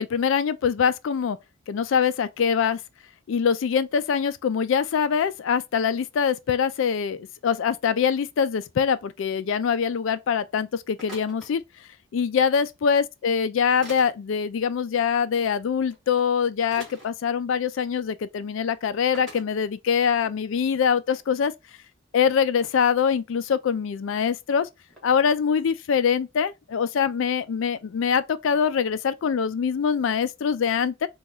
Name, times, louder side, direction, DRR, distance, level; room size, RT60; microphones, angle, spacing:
voice 1, 0.0-1.4 1.7-2.8 3.3-11.6 12.1-21.5 22.1-24.7 25.0-31.1, left 7 dB, 65° left, 0.3 m, -24 dB
sound 1, 11.0-11.5 12.9-13.0 13.8-14.1 15.9-16.0 16.7-17.1 18.0-18.1 18.4-18.5 19.1-19.4 20.1-20.2 20.6-21.2 21.9-22.0 22.6-22.9 24.9-25.0, equal, ahead, 1.3 m, -44 dB
3.0 x 2.3 x 3.7 m
head